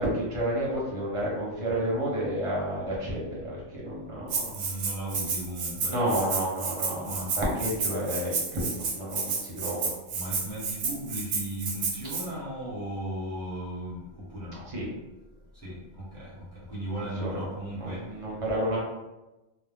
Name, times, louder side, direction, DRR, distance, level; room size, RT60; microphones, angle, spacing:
voice 1, 0.0-4.5 5.9-9.9 14.7-14.9 17.1-17.4 17.7-18.8, right 1 dB, 30° right, -5 dB, 0.7 m, -30 dB
Rattle (instrument), 4.3-12.2, right 4 dB, 70° right, 0.9 m, -31 dB
voice 2, 4.5-5.9 7.0-7.3 10.1-14.6 15.6-18.0, right 1 dB, 5° left, -10 dB, 1.0 m, -36 dB
2.4 x 2.0 x 3.3 m, 1.0 s
omnidirectional pair, 1.3 m